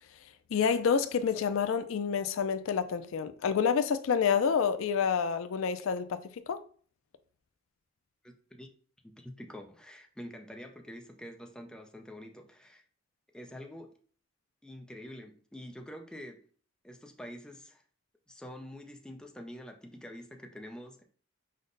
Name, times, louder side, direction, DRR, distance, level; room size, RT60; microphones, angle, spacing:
voice 1, 0.5-6.6, left 6 dB, 75° left, 0.4 m, -28 dB
voice 2, 8.2-8.7 9.2-12.8 13.3-14.0 14.6-16.4 16.8-17.8 18.3-21.0, equal, 5° left, 0.4 m, -46 dB
5.3 x 2.1 x 3.8 m
head